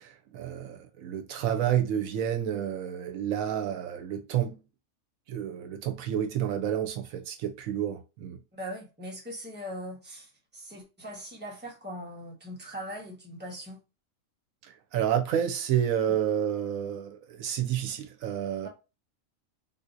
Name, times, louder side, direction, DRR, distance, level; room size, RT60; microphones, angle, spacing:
voice 1, 0.0-4.6 5.3-8.4 14.6-18.7, right 10 dB, 80° right, 1.0 m, -30 dB
voice 2, 8.5-13.8 18.6-18.7, equal, 10° right, 1.0 m, -40 dB
3.6 x 2.7 x 2.5 m
omnidirectional pair, 1.4 m